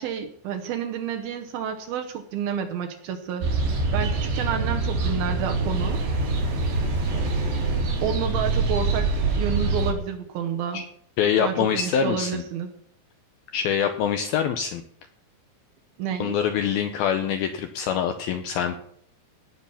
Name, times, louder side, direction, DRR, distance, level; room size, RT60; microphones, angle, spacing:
voice 1, 0.0-3.6 3.9-6.0 8.0-10.8 11.4-12.7 16.0-16.4, right 8 dB, 75° right, 5 dB, 2.4 m, -30 dB
sound 1, 3.4-9.9, right 3 dB, 90° right, 5.8 m, -25 dB
voice 2, 11.2-12.4 13.5-14.8 16.2-18.8, left 8 dB, 80° left, 7 dB, 2.2 m, -24 dB
17.5 x 7.1 x 5.7 m, 0.66 s
omnidirectional pair, 5.1 m